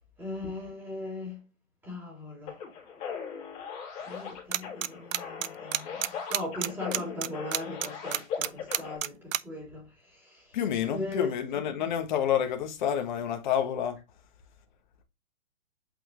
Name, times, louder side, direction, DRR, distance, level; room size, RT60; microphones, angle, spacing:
voice 1, 0.2-1.5 1.8-2.6 4.0-10.5 10.9-11.3, left 2 dB, 5° right, 2.9 m, -38 dB
sound 1, 2.5-9.0, left 7 dB, 15° left, 2.1 m, -39 dB
sound 2, 4.5-4.9 5.1-9.4, right 11 dB, 75° right, 0.6 m, -28 dB
voice 2, 10.5-14.0, left 9 dB, 35° left, 1.4 m, -29 dB
8.3 x 4.1 x 3.1 m
hypercardioid pair, 165°, 40 cm